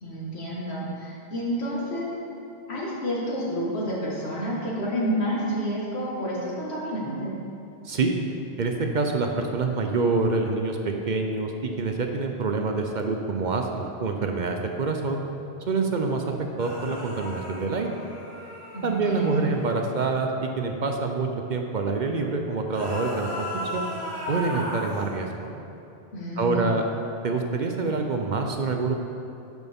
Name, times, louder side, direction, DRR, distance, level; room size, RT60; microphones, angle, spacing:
voice 1, 0.0-2.1 2.7-7.3 18.7-19.4 26.1-26.7, equal, 85° left, -6 dB, 2.1 m, -29 dB
voice 2, 7.8-8.2 8.6-11.5 11.8-15.2 15.7-17.9 18.8-23.5 23.7-23.9 24.3-25.6 26.4-26.9 27.2-28.9, right 3 dB, 50° right, 3 dB, 0.7 m, -26 dB
sound 1, 16.6-19.8 22.6-25.1, left 1 dB, 30° left, 1.6 m, -35 dB
12.5 x 6.1 x 3.6 m, 2.8 s
omnidirectional pair, 1.1 m